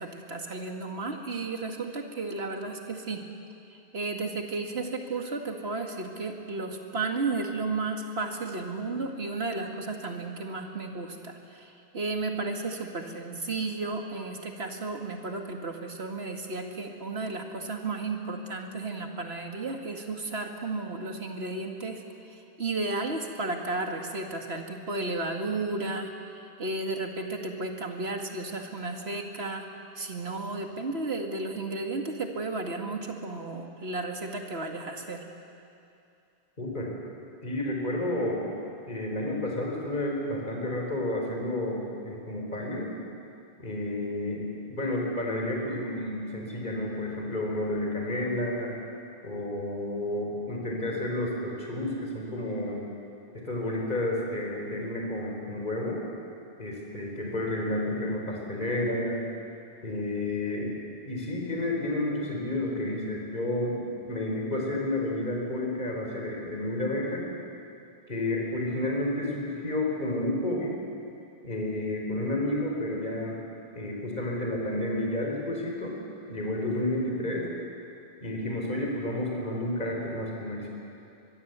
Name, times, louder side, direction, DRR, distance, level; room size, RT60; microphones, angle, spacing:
voice 1, 0.0-3.2 3.7-22.0 22.3-29.7 30.0-35.2, right 3 dB, 85° right, 3 dB, 2.3 m, -33 dB
voice 2, 36.6-36.9 37.4-38.5 38.8-42.9 43.6-48.7 49.2-52.8 53.3-56.0 56.6-59.2 59.8-60.7 61.0-67.3 68.1-70.8 71.4-73.4 73.7-76.0 76.3-77.5 78.2-80.7, left 1 dB, 50° left, -1 dB, 4.7 m, -31 dB
23.0 x 22.5 x 8.2 m, 2.6 s
omnidirectional pair, 1.0 m